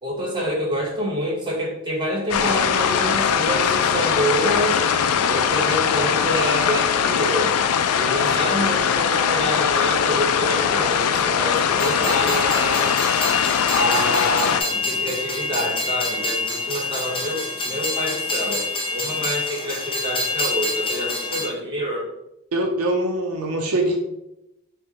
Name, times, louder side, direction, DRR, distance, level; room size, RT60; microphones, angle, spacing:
voice 1, 0.0-4.8 5.3-7.6 7.9-12.9 13.7-22.1, equal, 20° right, -3 dB, 1.1 m, -27 dB
sound 1, 2.3-14.6, left 7 dB, 80° left, 0.3 m, -21 dB
Train, 11.7-21.5, left 3 dB, 25° left, 0.5 m, -27 dB
voice 2, 22.5-24.0, right 1 dB, 80° right, 1 dB, 0.6 m, -23 dB
5.4 x 2.2 x 2.8 m, 0.87 s
head